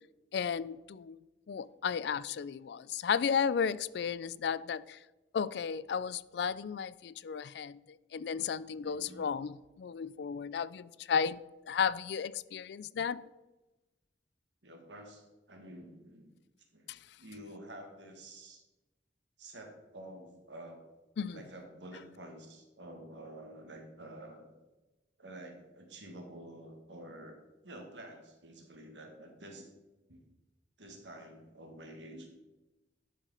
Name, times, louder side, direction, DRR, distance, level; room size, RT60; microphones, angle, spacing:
voice 1, 0.3-1.2 1.5-5.0 5.3-13.2 16.9-17.0 21.2-21.4, left 6 dB, 65° left, 0.3 m, -34 dB
voice 2, 8.9-9.3 14.6-16.3 16.7-18.6 19.4-20.8 21.3-24.5 25.2-27.4 27.6-29.7 30.1-30.2 30.8-32.3, right 1 dB, 80° right, 2.0 m, -49 dB
11.5 x 5.0 x 5.6 m
head